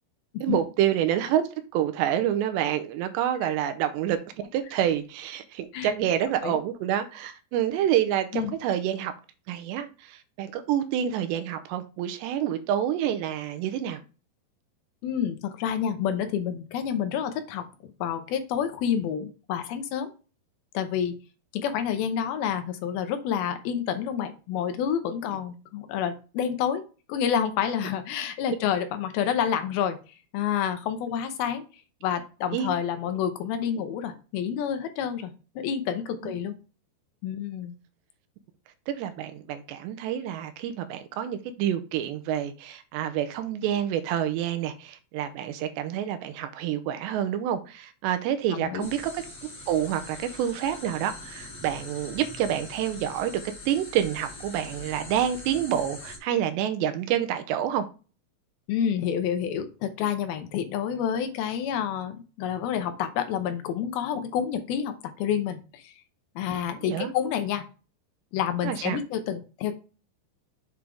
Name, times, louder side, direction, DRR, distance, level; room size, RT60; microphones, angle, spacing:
voice 1, 0.4-1.4 1.7-9.1 9.5-14.0 32.5-32.8 36.2-36.3 38.9-57.9 66.9-67.1 68.6-69.0, right 10 dB, 85° right, 2.9 m, -28 dB
voice 2, 15.0-17.7 18.0-20.1 20.7-21.1 21.5-26.8 27.1-30.0 30.3-31.6 32.0-36.5 37.2-37.7 48.5-48.9 58.7-65.9 66.4-67.6 68.3-69.7, left 8 dB, 80° left, 2.4 m, -28 dB
sound 1, 48.8-56.2, left 2 dB, 30° left, 2.5 m, -43 dB
7.5 x 5.0 x 3.5 m
omnidirectional pair, 4.9 m